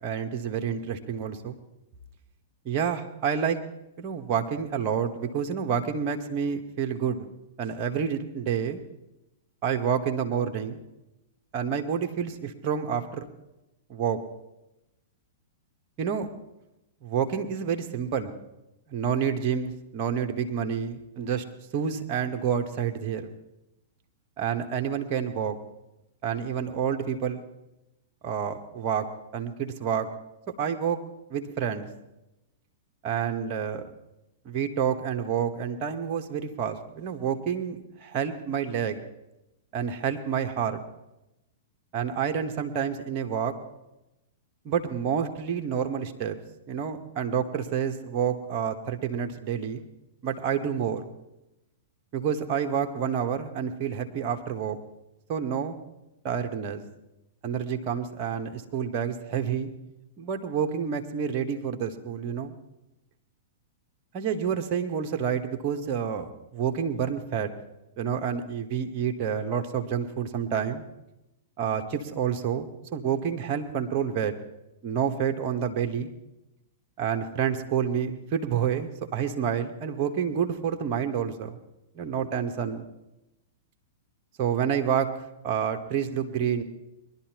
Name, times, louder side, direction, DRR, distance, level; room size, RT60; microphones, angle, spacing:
voice 1, 0.0-1.6 2.6-3.6 4.0-7.3 7.6-8.8 9.6-10.8 11.5-13.2 13.9-14.2 16.0-16.3 17.0-18.3 18.9-21.4 21.7-23.3 24.4-25.6 26.2-27.4 28.2-29.1 29.3-30.1 30.6-31.0 31.3-31.9 33.0-33.8 34.4-39.0 39.7-40.8 41.9-43.5 44.6-46.4 46.7-49.9 50.2-51.1 52.1-54.8 55.3-55.8 56.2-56.8 57.4-59.7 60.2-62.5 64.1-67.5 68.0-70.8 71.6-74.3 74.8-76.1 77.0-81.6 81.9-82.9 84.4-85.1 85.4-86.6, right 7 dB, 40° right, 5 dB, 1.4 m, -28 dB
23.0 x 11.5 x 3.0 m, 0.94 s
figure-of-eight pair, 105°, 0 cm